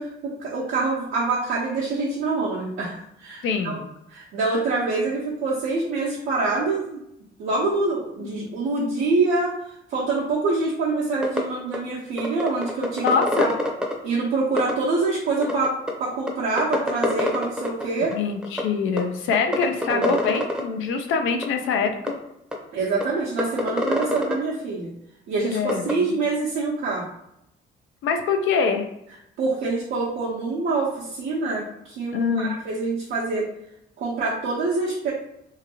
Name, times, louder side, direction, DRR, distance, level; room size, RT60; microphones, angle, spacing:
voice 1, 0.0-3.8 4.1-7.0 7.4-9.5 9.9-13.1 13.4-13.5 14.0-18.1 19.8-20.1 22.7-24.9 25.3-27.1 29.4-33.5 34.0-35.1, right 3 dB, 80° right, -7 dB, 0.8 m, -25 dB
voice 2, 3.4-3.9 8.2-8.3 13.0-13.5 18.1-22.1 25.4-26.1 28.0-28.9 32.1-32.5, left 5 dB, 85° left, 5 dB, 0.5 m, -24 dB
sound 1, 11.2-11.4 11.7-11.8 12.2-13.9 14.6-14.7 15.4-15.9 16.3-16.4 16.6-17.8 18.1-18.2 18.4-18.6 19.0-19.1 19.3-20.6 21.4-21.5 22.1-22.2 22.5-22.6 23.0-23.1 23.4-24.3 25.7-25.9, left 1 dB, 5° right, 0.6 m, -24 dB
2.8 x 2.6 x 2.8 m, 0.79 s
cardioid pair, 90°, 20 cm